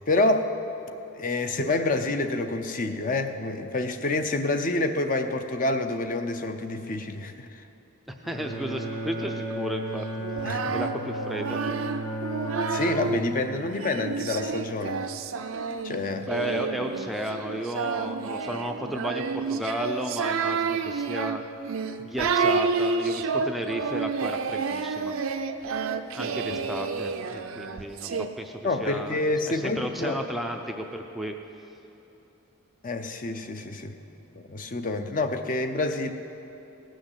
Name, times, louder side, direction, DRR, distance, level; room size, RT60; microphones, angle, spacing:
voice 1, 0.1-0.5 1.1-7.6 10.4-10.7 12.7-15.0 15.8-16.3 26.5-26.6 28.6-30.2 32.8-33.9 34.3-36.1, left 2 dB, 40° left, 7 dB, 0.7 m, -28 dB
Bowed string instrument, 8.2-13.7, right 1 dB, 80° left, 2.8 m, -34 dB
voice 2, 8.3-10.1 10.7-11.8 16.2-21.4 22.0-25.1 26.1-31.4, equal, ahead, 2 dB, 0.5 m, -33 dB
Singing, 10.2-13.2 13.8-28.3, right 4 dB, 70° right, 0.6 m, -29 dB
17.5 x 6.4 x 8.0 m, 3.0 s
head